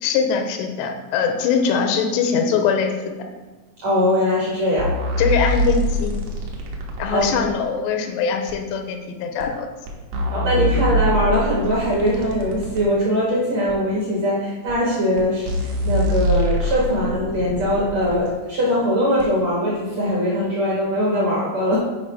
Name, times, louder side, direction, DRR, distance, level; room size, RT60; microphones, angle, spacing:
voice 1, 0.0-3.2 5.2-6.2 7.0-9.7 10.3-10.6, left 6 dB, 90° left, 5 dB, 2.8 m, -22 dB
voice 2, 3.8-4.9 7.1-7.3 10.3-21.8, equal, 65° right, -5 dB, 1.8 m, -21 dB
sound 1, 4.8-7.5 8.5-8.6 9.4-9.5 9.9-12.8 13.7-13.8 14.7-14.8 15.2-15.3 15.5-18.2 19.2-19.3, equal, 80° right, 3.2 m, -24 dB
8.7 x 4.7 x 4.8 m, 1.3 s
omnidirectional pair, 4.9 m